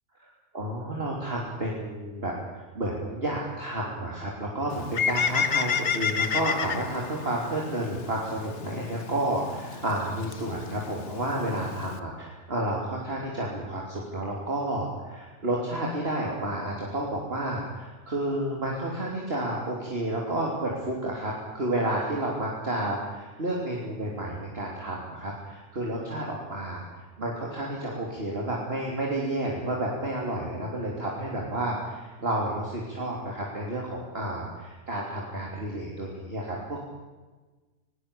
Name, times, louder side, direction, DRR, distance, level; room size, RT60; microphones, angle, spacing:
voice 1, 0.5-36.8, right 1 dB, 35° right, -2 dB, 3.6 m, -31 dB
Bird, 4.7-12.0, left 6 dB, 50° left, 1.4 m, -31 dB
21.0 x 18.5 x 8.6 m, 1.3 s
omnidirectional pair, 1.7 m